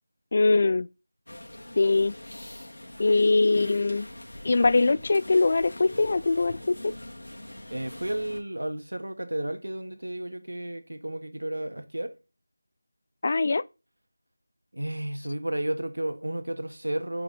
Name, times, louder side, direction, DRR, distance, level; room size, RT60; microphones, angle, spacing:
voice 1, 0.3-0.9 1.8-2.1 3.0-4.1 4.4-6.9 13.2-13.6, left 3 dB, 35° left, 0.4 m, -22 dB
sound 1, 1.3-8.4, left 1 dB, 85° left, 2.5 m, -42 dB
voice 2, 7.7-12.2 14.7-17.2, right 1 dB, 85° right, 1.7 m, -32 dB
9.1 x 5.7 x 4.0 m
figure-of-eight pair, 170°, 0 cm